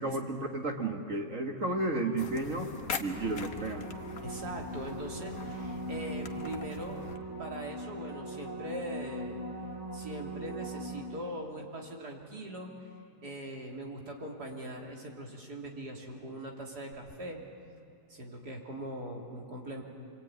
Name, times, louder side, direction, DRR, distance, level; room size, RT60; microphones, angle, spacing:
voice 1, 0.0-2.7 3.0-3.9, right 2 dB, 50° right, 3 dB, 2.0 m, -32 dB
sound 1, 2.2-7.2, left 5 dB, 55° left, 1.6 m, -42 dB
sound 2, 3.0-11.6 16.9-17.0, right 1 dB, 15° right, 1.6 m, -41 dB
voice 2, 4.2-7.0 7.4-9.4 9.9-12.8 13.2-17.4 18.1-19.8, right 1 dB, 65° right, 0 dB, 3.8 m, -41 dB
26.0 x 25.0 x 9.3 m, 2.4 s
omnidirectional pair, 1.9 m